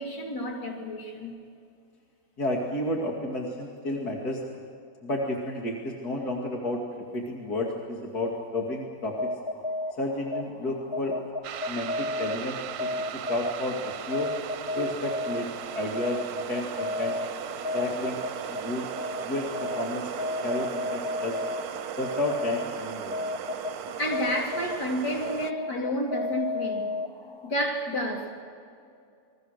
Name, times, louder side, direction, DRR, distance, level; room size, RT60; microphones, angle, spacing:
voice 1, 0.0-1.3 24.0-26.9 27.4-28.4, equal, 85° left, 4.0 m, -30 dB
voice 2, 2.4-4.4 5.0-6.8 7.1-9.3 10.0-11.2 11.7-14.3 14.7-17.2 17.7-18.2 18.5-18.9 19.2-20.1 20.4-21.4 22.0-23.1, left 1 dB, 70° left, 2.9 m, -31 dB
sound 1, 9.1-27.5, left 2 dB, 25° left, 0.7 m, -34 dB
sound 2, 11.4-25.5, right 9 dB, 70° right, 1.3 m, -37 dB
29.5 x 22.5 x 6.5 m
omnidirectional pair, 1.7 m